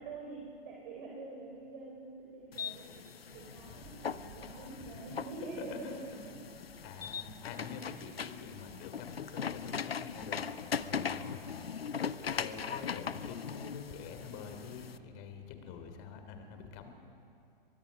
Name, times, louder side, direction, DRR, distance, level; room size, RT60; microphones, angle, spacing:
voice 1, 0.0-3.0 3.3-6.0, right 3 dB, 55° right, -1 dB, 4.0 m, -46 dB
sound 1, 2.5-15.0, left 6 dB, 85° left, 0.8 m, -40 dB
sound 2, 3.3-15.1, right 3 dB, 30° right, 4.1 m, -61 dB
voice 2, 4.8-6.2 6.8-11.7 12.2-16.9, left 6 dB, 40° left, 6 dB, 3.2 m, -47 dB
23.0 x 22.5 x 5.3 m, 2.7 s
figure-of-eight pair, 110°, 29 cm